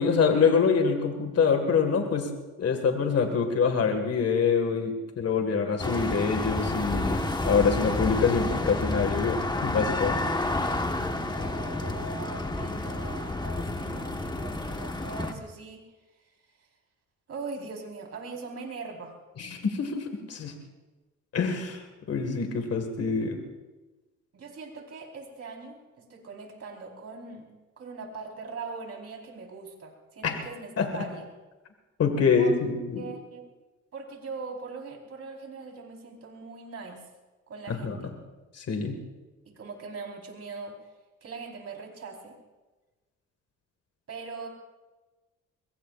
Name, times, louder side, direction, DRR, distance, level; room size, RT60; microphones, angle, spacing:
voice 1, 0.0-2.3 2.6-10.2 19.4-20.5 21.3-23.4 30.2-30.4 30.8-30.9 32.0-33.0 37.7-37.9 38.5-39.0, left 5 dB, 55° left, 5 dB, 2.0 m, -25 dB
sound 1, 5.8-15.3, left 2 dB, 15° left, 1.4 m, -30 dB
voice 2, 11.0-15.8 17.3-19.2 24.3-25.8 26.1-27.5 27.8-31.2 32.4-32.5 33.0-33.4 33.9-37.1 37.5-38.1 39.5-40.8 41.2-42.3 44.1-44.5, right 4 dB, 55° right, 1 dB, 4.5 m, -41 dB
23.0 x 22.5 x 2.6 m, 1.2 s
cardioid pair, 90°, 30 cm